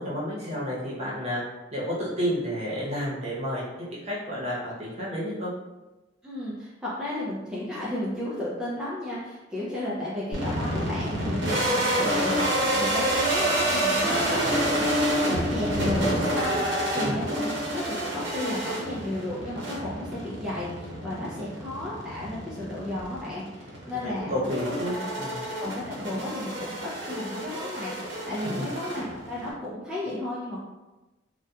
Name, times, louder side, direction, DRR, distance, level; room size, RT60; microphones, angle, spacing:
voice 1, 0.0-1.4 1.7-5.5 14.2-14.6 16.9-17.2 24.0-25.5 28.5-28.7, equal, 35° right, -7 dB, 0.8 m, -31 dB
voice 2, 6.2-14.9 15.3-24.3 24.6-24.7 25.6-26.7 27.0-30.6, left 1 dB, 5° right, -8 dB, 0.4 m, -33 dB
sound 1, 10.3-29.5, right 1 dB, 70° right, 0.7 m, -28 dB
2.7 x 2.1 x 2.3 m, 1.1 s
head